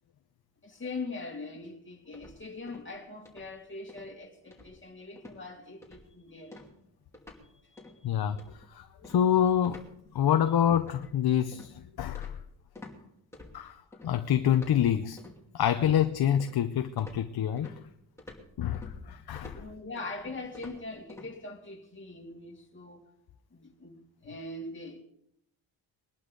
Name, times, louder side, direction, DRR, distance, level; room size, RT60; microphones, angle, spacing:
voice 1, 0.6-6.6 7.4-8.1 19.5-23.1 23.5-25.0, left 3 dB, 25° left, 2.3 m, -42 dB
sound 1, 2.1-3.0 3.2-3.6 3.9-4.1 4.5-4.9 5.2-5.4 5.8-6.2 6.5-7.5 7.8-8.0 8.4-13.0 13.3-14.1 14.5-15.4 15.8-16.7 17.0-21.3, left 2 dB, 5° left, 2.7 m, -50 dB
voice 2, 8.0-9.8 10.1-12.3 13.5-13.8 14.0-15.2 15.5-17.8 18.6-19.6, left 9 dB, 55° left, 0.7 m, -27 dB
21.5 x 11.5 x 3.9 m
cardioid pair, 125°, 45 cm